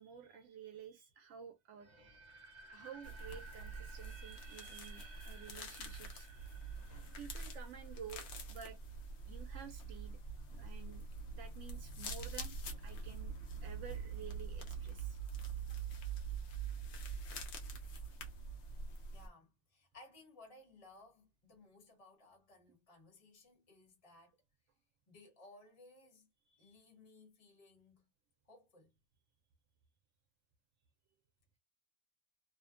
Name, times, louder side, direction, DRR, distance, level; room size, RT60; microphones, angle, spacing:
voice 1, 0.0-6.3 7.2-8.8 9.3-10.2 10.6-11.1 11.3-13.3 13.6-15.2 26.6-26.8, right 7 dB, 80° right, 0.9 m, -52 dB
sound 1, 1.8-8.7, right 3 dB, 40° right, 0.8 m, -57 dB
sound 2, 3.0-19.3, right 4 dB, 70° left, 0.9 m, -45 dB
voice 2, 19.1-24.4 25.1-26.3 26.6-28.1 28.4-28.9, left 2 dB, 30° left, 1.0 m, -60 dB
2.6 x 2.1 x 2.3 m
omnidirectional pair, 1.3 m